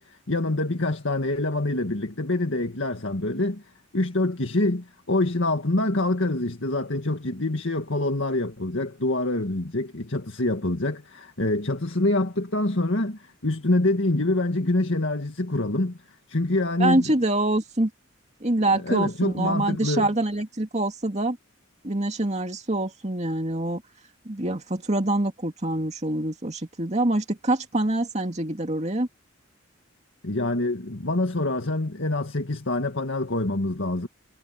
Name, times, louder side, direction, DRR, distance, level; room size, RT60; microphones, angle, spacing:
voice 1, 0.0-3.6 3.9-16.0 16.3-17.1 18.7-20.1 30.2-34.1, left 2 dB, 65° left, 1.9 m, -26 dB
voice 2, 16.8-17.9 18.4-21.4 21.8-23.8 24.3-29.1, right 1 dB, 35° right, 2.4 m, -25 dB
head